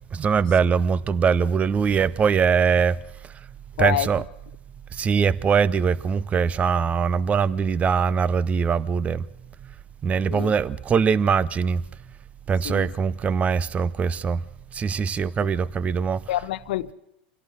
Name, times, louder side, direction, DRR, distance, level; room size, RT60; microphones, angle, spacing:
voice 1, 0.1-3.0 3.2-3.3 3.8-4.3 4.9-9.3 10.0-11.8 12.5-14.4 14.7-16.4, right 6 dB, 25° right, 0.8 m, -22 dB
voice 2, 3.8-4.1 10.3-10.5 12.6-12.9 16.3-16.9, left 15 dB, 60° left, 0.8 m, -27 dB
26.0 x 17.0 x 8.0 m
figure-of-eight pair, 85°, 6 cm